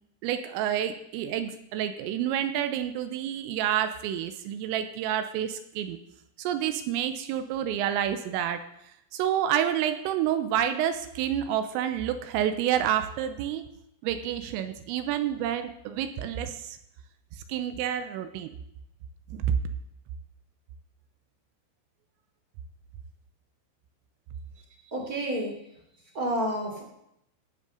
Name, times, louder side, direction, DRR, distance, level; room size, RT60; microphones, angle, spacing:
voice 1, 0.2-6.0 6.4-8.6 9.1-13.7 14.0-16.8 17.3-18.5 19.3-19.6, right 10 dB, 85° right, 9 dB, 3.4 m, -29 dB
voice 2, 24.9-25.5 26.1-26.8, right 1 dB, 25° right, 0 dB, 2.2 m, -29 dB
17.5 x 6.4 x 7.1 m, 0.79 s
omnidirectional pair, 6.0 m